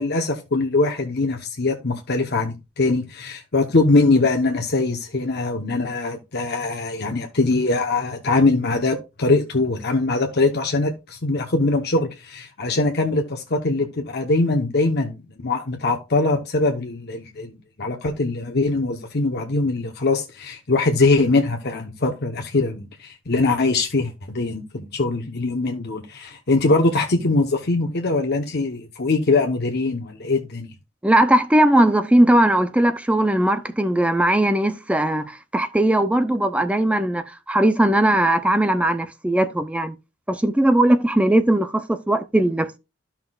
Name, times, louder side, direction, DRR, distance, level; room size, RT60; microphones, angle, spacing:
voice 1, 0.0-30.7, left 3 dB, 55° left, 1.0 m, -22 dB
voice 2, 31.0-39.9 40.3-42.8, right 1 dB, 5° right, 0.4 m, -19 dB
13.0 x 5.8 x 2.3 m
head